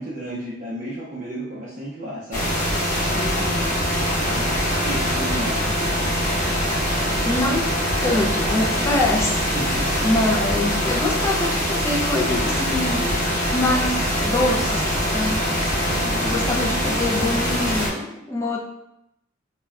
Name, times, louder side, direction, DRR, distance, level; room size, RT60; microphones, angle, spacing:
voice 1, 0.0-2.5 4.0-4.5 4.9-6.2 9.5-10.0 15.9-16.5, right 1 dB, 40° right, -7 dB, 0.5 m, -33 dB
sound 1, 2.3-17.9, equal, 40° left, 0.7 m, -23 dB
voice 2, 3.2-3.8 7.2-7.7 8.0-9.5 10.0-13.2 13.5-15.6 16.2-18.6, left 2 dB, 15° left, -1 dB, 0.3 m, -25 dB
2.2 x 2.1 x 3.5 m, 0.83 s
head